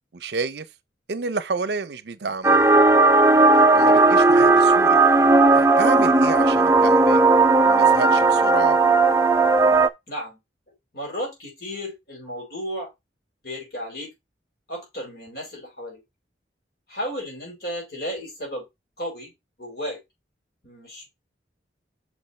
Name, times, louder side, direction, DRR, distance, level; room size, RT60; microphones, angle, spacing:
voice 1, 0.1-0.7 1.1-2.7 3.5-5.0 5.5-7.2 7.6-8.8, right 4 dB, 65° right, 0.6 m, -30 dB
sound 1, 2.4-9.9, right 3 dB, 15° right, 0.4 m, -16 dB
voice 2, 10.1-10.4 10.9-12.9 13.4-14.1 14.7-16.0 16.9-18.6 19.0-19.3 19.6-20.0 20.6-21.1, equal, 60° left, 5.2 m, -33 dB
6.2 x 5.4 x 4.3 m
head